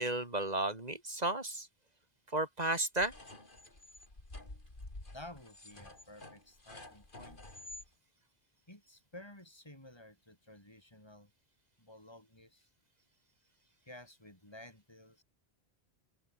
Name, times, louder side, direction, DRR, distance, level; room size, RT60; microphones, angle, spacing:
voice 1, 0.0-1.7 2.3-3.1, right 2 dB, 35° right, 3.3 m, -33 dB
sound 1, 3.0-7.9, left 2 dB, 50° left, 4.4 m, -50 dB
voice 2, 5.1-7.4 8.7-11.3 11.8-12.7 13.9-15.2, left 1 dB, 25° left, 6.0 m, -53 dB
open air
omnidirectional pair, 1.1 m